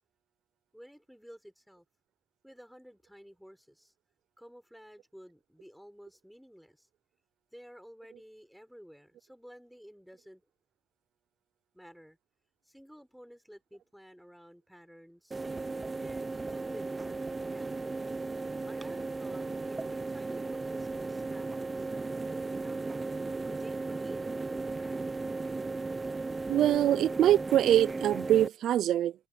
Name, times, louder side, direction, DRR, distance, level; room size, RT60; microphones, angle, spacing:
voice 1, 0.7-1.8 2.4-3.9 4.4-6.9 7.5-10.4 11.7-12.2 12.6-15.4 16.0-18.2 18.6-23.1 23.4-25.0, equal, ahead, 4.2 m, -53 dB
sound 1, 15.3-28.5, right 3 dB, 25° right, 0.6 m, -36 dB
voice 2, 26.5-29.1, right 11 dB, 75° right, 0.4 m, -24 dB
cardioid pair, 90°, 0 cm